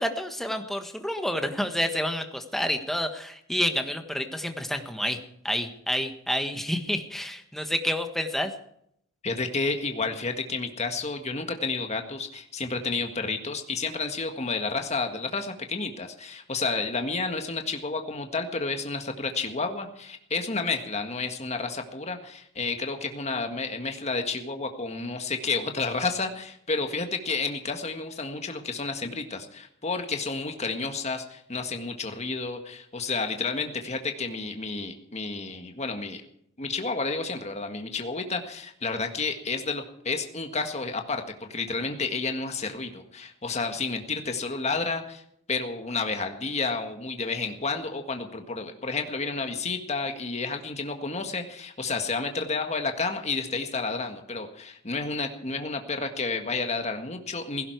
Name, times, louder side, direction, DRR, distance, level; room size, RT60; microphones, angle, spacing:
voice 1, 0.0-5.2 5.4-8.5, equal, ahead, 6 dB, 1.5 m, -29 dB
voice 2, 9.2-36.2 36.6-45.2 45.5-57.7, left 4 dB, 35° left, 5 dB, 1.7 m, -31 dB
16.5 x 16.5 x 4.7 m, 0.70 s
head